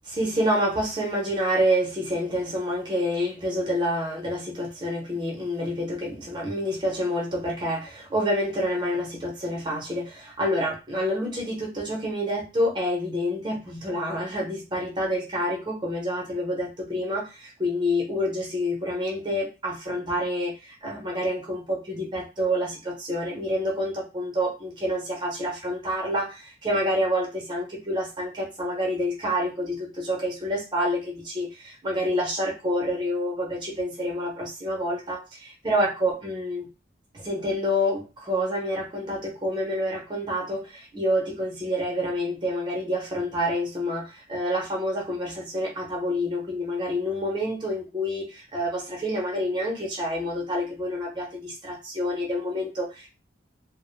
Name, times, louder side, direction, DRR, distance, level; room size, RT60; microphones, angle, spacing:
voice 1, 0.1-36.7 37.1-53.1, equal, 25° right, -2 dB, 0.7 m, -28 dB
2.5 x 2.0 x 3.1 m, 0.29 s
head